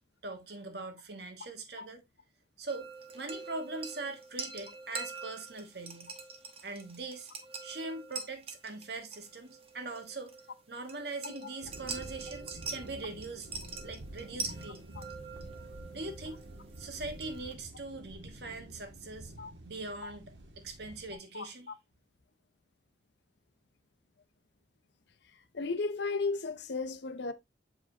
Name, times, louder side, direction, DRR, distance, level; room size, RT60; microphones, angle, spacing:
voice 1, 0.2-2.0 2.6-6.1 6.6-7.3 7.6-10.3 10.7-13.5 13.8-14.9 15.9-16.4 16.8-19.3 19.6-21.7, right 3 dB, 55° right, 1.4 m, -42 dB
sound 1, 2.7-17.5, right 4 dB, 30° right, 1.0 m, -44 dB
sound 2, 11.6-21.1, right 1 dB, 75° right, 1.5 m, -48 dB
voice 2, 25.5-27.3, left 3 dB, 65° left, 0.7 m, -34 dB
7.3 x 4.9 x 2.8 m
head